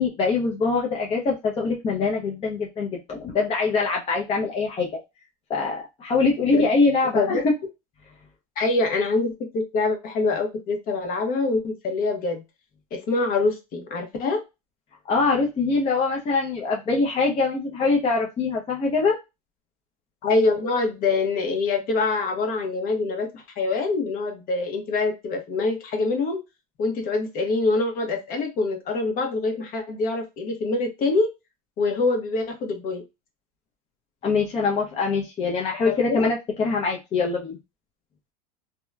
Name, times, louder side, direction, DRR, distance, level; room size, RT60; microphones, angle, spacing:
voice 1, 0.0-4.9 5.5-7.5 15.1-19.2 34.2-37.6, left 4 dB, 30° left, -1 dB, 0.6 m, -23 dB
voice 2, 8.6-12.4 12.9-14.4 20.2-26.4 26.8-31.3 31.8-33.0 35.8-36.3, left 3 dB, 45° left, 4 dB, 1.0 m, -25 dB
2.8 x 2.2 x 2.3 m, 0.24 s
supercardioid pair, 115°, 20 cm